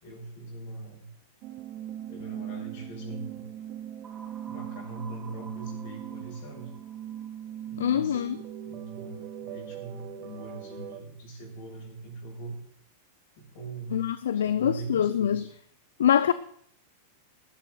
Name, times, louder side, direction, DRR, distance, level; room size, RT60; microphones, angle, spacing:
voice 1, 0.0-1.1 2.1-3.4 4.5-6.7 7.7-8.3 8.6-12.6 13.4-14.1 14.3-15.5, right 3 dB, 60° left, 6.7 m, -41 dB
sound 1, 1.4-11.0, right 10 dB, 45° right, 1.1 m, -40 dB
sound 2, 4.0-7.9, right 4 dB, 20° right, 1.9 m, -51 dB
voice 2, 7.8-8.4 13.9-15.4 16.0-16.3, left 9 dB, 75° left, 0.5 m, -24 dB
17.5 x 12.0 x 3.9 m
hypercardioid pair, 100°, 0 cm